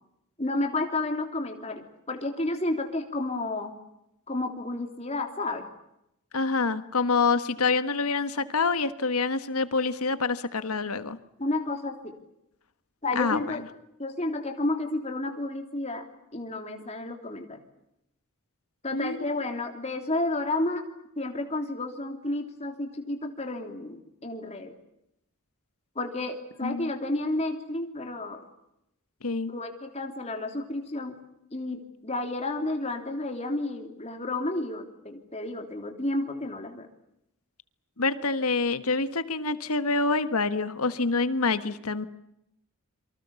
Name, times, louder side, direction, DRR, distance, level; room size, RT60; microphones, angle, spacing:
voice 1, 0.4-3.7 4.3-5.6 11.4-12.1 13.0-13.6 14.0-16.1 16.3-17.6 18.8-20.8 21.1-24.7 25.9-28.4 29.5-31.1 31.5-36.9, left 2 dB, 30° left, 4 dB, 3.2 m, -31 dB
voice 2, 6.3-11.2 13.1-13.4 18.9-19.3 26.6-26.9 29.2-29.5 38.0-42.1, left 4 dB, 75° left, 12 dB, 1.5 m, -26 dB
28.5 x 24.5 x 7.1 m, 0.84 s
head